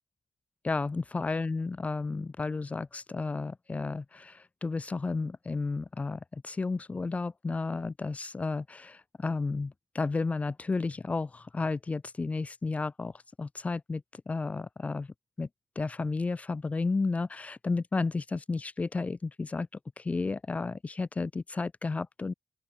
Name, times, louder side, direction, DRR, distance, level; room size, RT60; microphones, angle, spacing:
voice 1, 0.6-13.1 13.4-15.5 15.8-19.7 20.0-22.3, left 3 dB, 25° left, 4.4 m, -32 dB
open air
cardioid pair, 95°, 5 cm